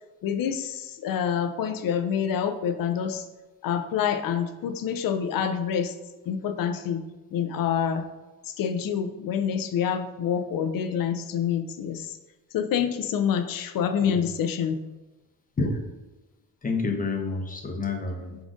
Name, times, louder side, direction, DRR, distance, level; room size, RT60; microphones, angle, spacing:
voice 1, 0.2-3.2 3.6-5.9 6.3-7.0 7.3-8.0 8.6-12.1 12.5-14.7, left 8 dB, 60° left, 8 dB, 0.5 m, -27 dB
voice 2, 16.6-18.4, left 3 dB, 20° left, 3 dB, 0.7 m, -29 dB
4.8 x 3.8 x 2.5 m, 1.1 s
cardioid pair, 85°, 38 cm